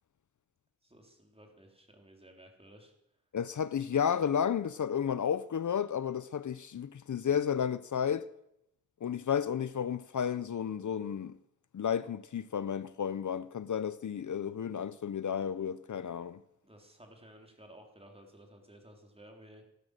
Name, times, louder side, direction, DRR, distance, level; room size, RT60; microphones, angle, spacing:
voice 1, 0.8-2.9 16.6-19.6, right 1 dB, 20° right, 3.5 m, -55 dB
voice 2, 3.3-8.3 9.0-11.3 11.7-16.4, left 8 dB, 65° left, 0.6 m, -32 dB
15.0 x 12.5 x 6.6 m
wide cardioid pair, 90°, 32 cm